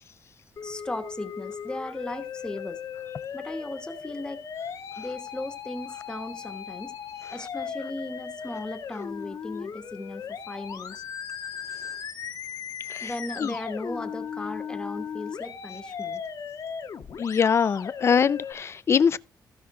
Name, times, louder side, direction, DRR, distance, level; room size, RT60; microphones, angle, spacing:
Musical instrument, 0.6-18.5, left 7 dB, 60° left, 1.4 m, -37 dB
voice 1, 0.6-2.8 3.3-4.4 5.0-6.9 7.3-11.0 13.0-16.2, left 2 dB, 10° left, 1.1 m, -36 dB
voice 2, 17.2-19.2, left 6 dB, 40° left, 0.4 m, -22 dB
15.0 x 5.7 x 3.7 m
wide cardioid pair, 160°, 7 cm